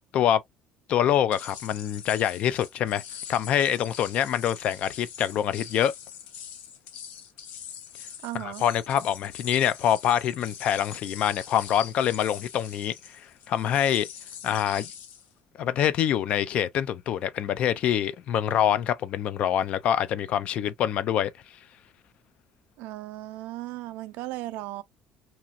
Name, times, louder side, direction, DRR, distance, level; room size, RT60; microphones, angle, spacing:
voice 1, 0.9-3.0 3.3-5.9 8.3-14.1 14.4-14.9 15.6-21.3, left 10 dB, 45° left, 0.3 m, -25 dB
sound 1, 1.3-15.3, left 8 dB, 75° left, 0.8 m, -43 dB
voice 2, 8.2-8.6 22.8-24.8, right 16 dB, 80° right, 0.4 m, -36 dB
2.9 x 2.4 x 2.4 m
cardioid pair, 180°, 3 cm